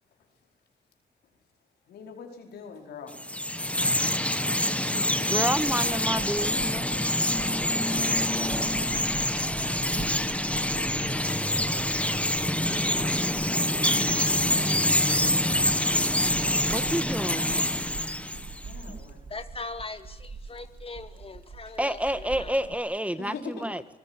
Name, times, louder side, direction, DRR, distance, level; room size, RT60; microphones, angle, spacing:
voice 1, 1.9-3.2 16.2-16.3 16.5-16.8 18.6-19.2 21.6-21.7 22.0-22.1 23.2-23.7, left 5 dB, 90° left, 2 dB, 4.8 m, -42 dB
Chirp tweet, 3.1-18.7, left 1 dB, 10° left, 1.7 m, -26 dB
voice 2, 5.3-6.9 16.7-17.7 18.9-19.0 21.8-23.8, right 1 dB, 10° right, 12 dB, 1.6 m, -29 dB
sound 1, 5.6-22.7, right 5 dB, 60° right, 3.4 m, -44 dB
voice 3, 18.3-22.7, left 3 dB, 35° left, 8 dB, 2.2 m, -42 dB
26.5 x 19.5 x 9.7 m, 0.97 s
cardioid pair, 55°, 17 cm